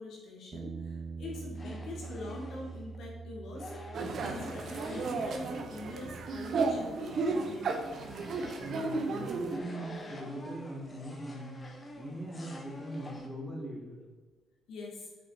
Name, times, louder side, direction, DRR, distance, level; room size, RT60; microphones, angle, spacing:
voice 1, 0.0-8.0 8.9-9.1 14.7-15.1, left 2 dB, 75° left, -3 dB, 2.2 m, -44 dB
sound 1, 0.5-6.8, right 4 dB, 45° right, 0.5 m, -45 dB
sound 2, 1.2-3.0 3.5-6.1 6.4-13.3, left 1 dB, 30° left, 1.3 m, -48 dB
sound 3, 3.9-9.6, right 3 dB, 60° right, 0.9 m, -34 dB
voice 2, 8.6-11.6 11.9-14.0, right 1 dB, ahead, -4 dB, 2.3 m, -41 dB
6.7 x 4.7 x 4.9 m, 1.4 s
cardioid pair, 90°, 0 cm